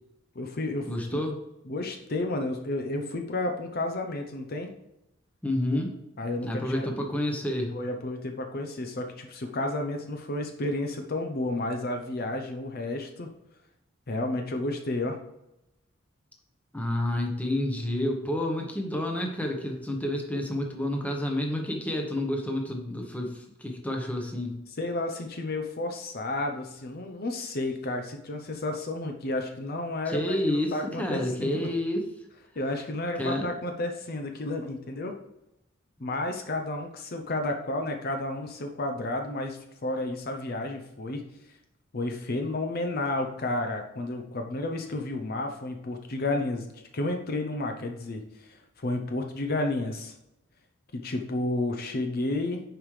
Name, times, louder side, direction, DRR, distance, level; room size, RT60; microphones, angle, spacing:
voice 1, 0.4-1.2 1.7-4.7 6.2-6.9 7.7-13.3 14.1-15.2 24.8-31.7 32.6-35.2 36.0-41.2 41.9-50.1 50.9-52.6, left 2 dB, 50° left, 4 dB, 0.7 m, -31 dB
voice 2, 0.9-1.4 5.4-6.0 6.4-7.7 16.7-24.6 30.1-32.1 33.2-33.5, left 1 dB, 5° left, 2 dB, 1.0 m, -29 dB
9.1 x 5.0 x 3.2 m, 0.86 s
head